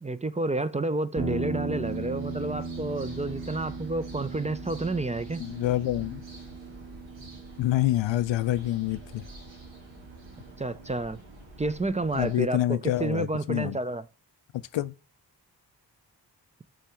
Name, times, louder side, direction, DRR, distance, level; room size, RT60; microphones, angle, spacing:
voice 1, 0.0-5.4 10.6-11.2 11.6-14.0, right 2 dB, 15° right, 0.4 m, -30 dB
sound 1, 1.2-9.5, right 3 dB, 50° right, 2.3 m, -38 dB
sound 2, 1.8-12.4, right 1 dB, 85° right, 1.8 m, -47 dB
voice 2, 5.4-6.2 7.6-9.2 12.1-13.8 14.5-14.9, left 14 dB, 85° left, 0.6 m, -27 dB
6.3 x 3.7 x 4.4 m
cardioid pair, 45°, 44 cm